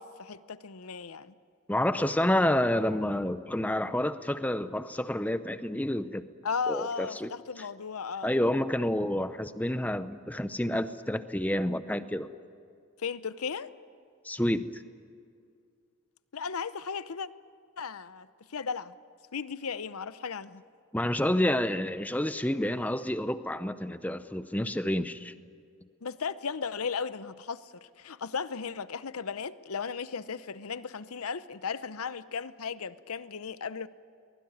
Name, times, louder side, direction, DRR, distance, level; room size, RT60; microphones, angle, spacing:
voice 1, 0.0-1.3 6.4-8.3 13.0-13.7 16.3-17.3 17.8-18.9 19.3-20.6 26.0-33.9, left 5 dB, 80° left, 0.8 m, -36 dB
voice 2, 1.7-6.3 6.7-7.3 8.2-12.3 14.2-14.8 20.9-25.3, left 1 dB, 5° left, 0.7 m, -29 dB
23.0 x 21.0 x 9.5 m
head